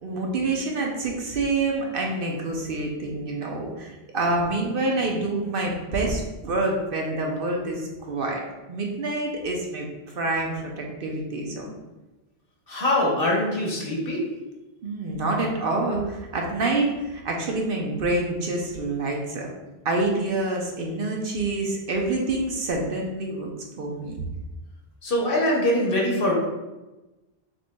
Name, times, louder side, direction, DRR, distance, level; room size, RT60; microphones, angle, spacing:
voice 1, 0.0-7.8 8.1-8.4 8.7-9.9 10.1-11.7 14.8-19.5 19.8-23.5 23.8-24.2, right 2 dB, 60° right, 0 dB, 0.8 m, -27 dB
voice 2, 12.7-14.2 25.0-26.3, left 1 dB, 60° left, -3 dB, 1.2 m, -23 dB
6.3 x 3.1 x 2.2 m, 1.1 s
omnidirectional pair, 1.1 m